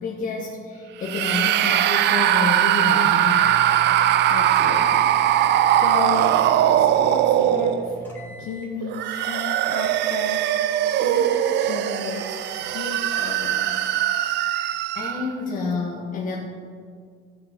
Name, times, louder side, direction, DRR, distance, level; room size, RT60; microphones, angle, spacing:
voice 1, 0.0-3.5 8.2-8.4 14.9-16.4, left 4 dB, 45° left, -2 dB, 1.4 m, -29 dB
sound 1, 1.0-8.1 8.8-15.3, right 11 dB, 60° right, 0.5 m, -20 dB
sound 2, 3.1-8.8 9.1-9.7 10.1-10.8 11.1-11.7 12.1-12.7, equal, 10° left, 2.9 m, -42 dB
voice 2, 3.9-5.1 5.5-6.5 6.7-7.9 8.4-10.7 11.0-13.9, left 5 dB, 70° left, 0 dB, 1.3 m, -34 dB
14.0 x 6.5 x 5.2 m, 2.1 s
cardioid pair, 120°, 20 cm